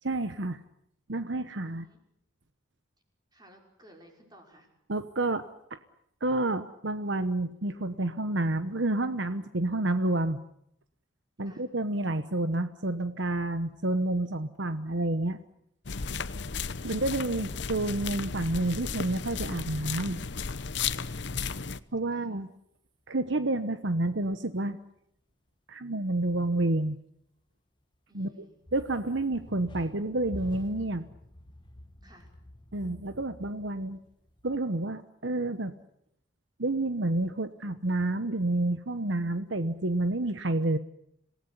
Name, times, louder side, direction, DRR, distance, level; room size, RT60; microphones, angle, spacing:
voice 1, 0.0-0.6 1.1-1.9 4.9-5.8 6.2-10.4 11.4-15.4 16.8-20.2 21.9-22.5 23.1-24.8 25.7-27.0 28.1-28.3 28.7-31.0 32.7-34.0 34.4-35.7 36.6-40.8, right 2 dB, 65° right, 11 dB, 1.1 m, -29 dB
voice 2, 1.6-2.0 3.3-4.7 11.4-11.6 22.1-22.3 28.1-28.6 32.0-32.3, right 1 dB, 20° right, 2 dB, 5.7 m, -57 dB
sound 1, 15.9-21.8, left 5 dB, 60° left, 0.9 m, -34 dB
sound 2, 22.0-22.1 27.5-27.6 28.6-34.6, left 1 dB, 25° left, 1.4 m, -48 dB
27.0 x 18.0 x 9.9 m, 0.75 s
head